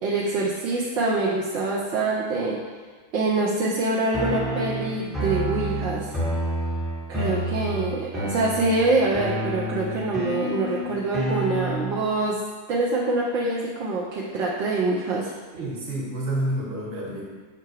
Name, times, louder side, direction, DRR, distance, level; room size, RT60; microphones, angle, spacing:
voice 1, 0.0-2.6 3.1-6.1 7.1-12.4 12.7-15.3, right 2 dB, 40° right, -4 dB, 0.5 m, -25 dB
sound 1, 4.1-12.1, right 1 dB, ahead, 1.1 m, -29 dB
voice 2, 15.5-17.3, right 1 dB, 55° right, -4 dB, 1.2 m, -29 dB
5.7 x 2.2 x 3.2 m, 1.4 s
figure-of-eight pair, 90°, 0 cm